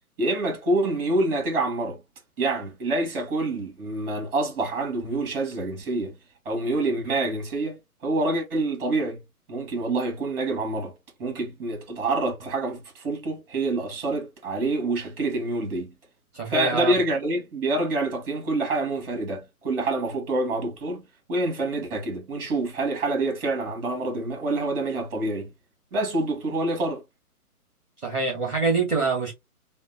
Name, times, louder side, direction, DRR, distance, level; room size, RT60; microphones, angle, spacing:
voice 1, 0.2-2.0 2.4-6.2 6.5-9.2 9.5-10.9 11.2-15.9 16.5-21.0 21.3-25.5 25.9-27.0, right 2 dB, 35° right, 1.9 m, -27 dB
voice 2, 16.3-16.9 28.0-29.3, right 4 dB, ahead, 0.5 m, -25 dB
3.5 x 2.1 x 4.1 m
figure-of-eight pair, 135°, 45 cm